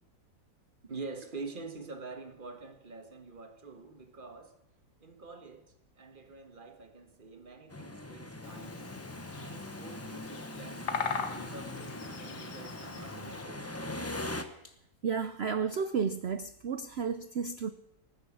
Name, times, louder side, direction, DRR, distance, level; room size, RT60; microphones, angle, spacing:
voice 1, 0.8-4.6 5.0-8.8 9.4-13.7, right 4 dB, 30° right, 1.6 m, -46 dB
sound 1, 7.7-14.4, left 1 dB, 10° left, 0.7 m, -41 dB
Bird vocalization bird call bird song, 8.4-13.4, left 6 dB, 75° left, 1.8 m, -40 dB
voice 2, 15.0-17.7, right 6 dB, 60° right, 0.7 m, -32 dB
18.5 x 9.8 x 7.4 m
omnidirectional pair, 1.8 m